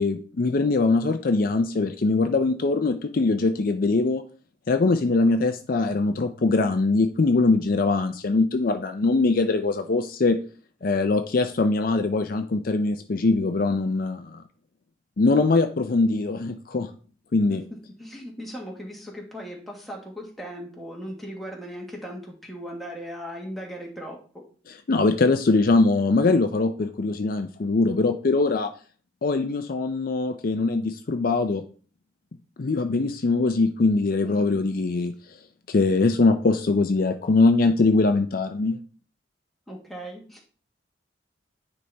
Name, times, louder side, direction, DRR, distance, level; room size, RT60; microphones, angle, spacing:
voice 1, 0.0-4.2 4.7-10.4 10.8-14.4 15.2-16.9 17.3-17.6 24.9-28.7 29.2-31.6 32.6-35.1 35.7-38.8, left 3 dB, 50° left, 7 dB, 0.5 m, -22 dB
voice 2, 17.5-24.4 34.2-34.7 39.7-40.5, equal, ahead, -2 dB, 1.5 m, -38 dB
9.6 x 4.1 x 3.4 m, 0.41 s
head